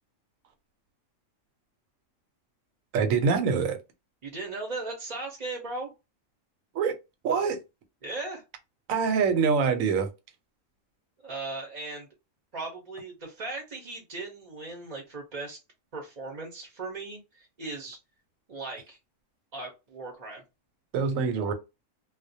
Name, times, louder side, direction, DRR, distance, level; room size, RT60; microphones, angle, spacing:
voice 1, 2.9-3.8 6.7-6.9 7.2-7.6 8.9-10.1 20.9-21.5, right 5 dB, 90° right, 1.0 m, -24 dB
voice 2, 4.2-5.9 8.0-8.4 11.2-12.1 12.5-15.6 15.9-18.0 18.5-19.0 19.5-20.4, right 3 dB, 45° right, 0.6 m, -37 dB
2.3 x 2.1 x 2.6 m
omnidirectional pair, 1.3 m